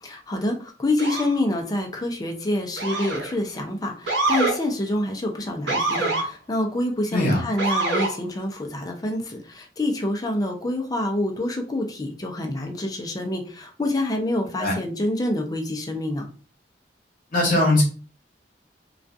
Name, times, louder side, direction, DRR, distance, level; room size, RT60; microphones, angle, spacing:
voice 1, 0.0-16.3, left 1 dB, 20° left, 3 dB, 0.4 m, -27 dB
Motor vehicle (road) / Siren, 1.0-1.4 2.8-3.3 4.1-4.6 5.7-6.3 7.6-8.1, right 2 dB, 80° right, 0.8 m, -24 dB
voice 2, 7.1-7.4 14.6-14.8 17.3-17.8, left 1 dB, 50° left, -3 dB, 0.9 m, -20 dB
2.4 x 2.3 x 2.5 m, 0.38 s
head